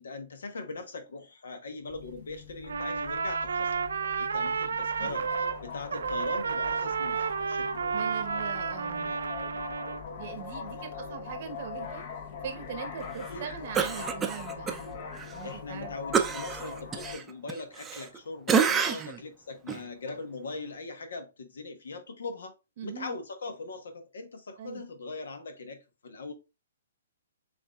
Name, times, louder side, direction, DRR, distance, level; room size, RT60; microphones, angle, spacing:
voice 1, 0.0-5.3 5.6-8.1 10.5-11.1 13.3-13.5 15.4-22.5 22.8-26.3, left 3 dB, 80° left, 1.1 m, -41 dB
sound 1, 1.9-17.1, left 6 dB, 50° left, 1.0 m, -42 dB
Trumpet, 2.6-5.6 5.9-10.0, right 5 dB, 80° right, 0.4 m, -31 dB
voice 2, 4.7-5.1 7.9-9.1 10.2-12.1 12.4-15.9 18.8-19.1 22.8-23.2 24.6-24.9, right 7 dB, 50° right, 0.8 m, -41 dB
Cough, 13.7-14.8 15.2-15.3 16.1-18.2 18.5-19.2 19.7-19.8, right 6 dB, 15° right, 0.5 m, -28 dB
7.0 x 2.6 x 2.3 m
hypercardioid pair, 140°, 0 cm